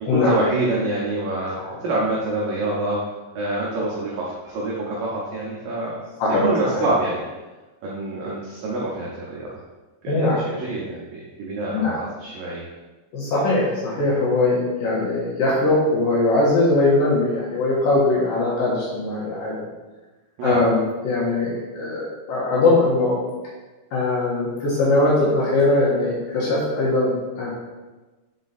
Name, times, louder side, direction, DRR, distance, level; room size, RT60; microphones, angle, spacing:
voice 1, 0.0-6.0 6.4-7.2 7.8-9.5 10.0-12.7 20.4-20.6, right 2 dB, 80° right, -5 dB, 2.0 m, -26 dB
voice 2, 10.1-10.4 11.7-12.0 13.1-19.6 20.4-23.2 23.9-27.5, left 2 dB, 65° left, -7 dB, 2.5 m, -21 dB
6.0 x 5.2 x 4.1 m, 1.2 s
omnidirectional pair, 5.3 m